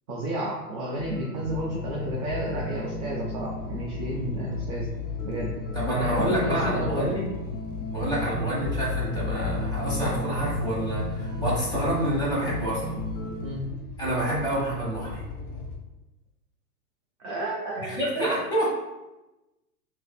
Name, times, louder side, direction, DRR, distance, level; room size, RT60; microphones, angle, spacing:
voice 1, 0.1-4.9 5.2-5.5 6.0-7.1 13.4-13.6 17.2-18.3, right 1 dB, 25° right, -3 dB, 0.4 m, -32 dB
sound 1, 1.0-13.4, left 3 dB, 85° left, 1.2 m, -33 dB
sound 2, 1.5-15.8, left 2 dB, 45° left, 1.2 m, -38 dB
voice 2, 5.7-7.2 7.9-13.0 14.0-15.2 18.0-18.7, right 1 dB, 10° left, -5 dB, 1.2 m, -27 dB
6.2 x 2.6 x 2.3 m, 1.0 s
hypercardioid pair, 125°, 49 cm